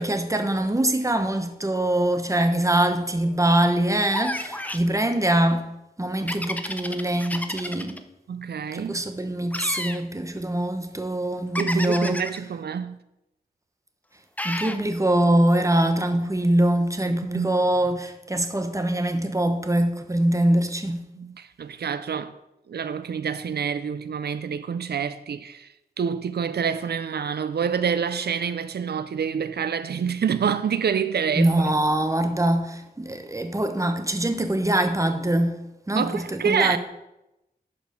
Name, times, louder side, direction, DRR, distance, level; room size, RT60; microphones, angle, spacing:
voice 1, 0.0-5.6 6.0-8.0 8.7-12.2 14.4-21.0 31.4-35.6 35.9-36.8, right 1 dB, 20° right, 1.0 m, -23 dB
sound 1, 4.1-4.9 6.3-8.0 9.5-10.0 11.5-12.4 14.4-14.8, left 1 dB, 10° left, 0.7 m, -31 dB
voice 2, 8.3-9.0 11.6-13.0 17.3-17.5 21.2-22.4 22.7-25.7 26.0-31.7 35.9-36.8, right 7 dB, 85° right, 0.4 m, -27 dB
11.5 x 4.9 x 5.2 m
wide cardioid pair, 80°, 16 cm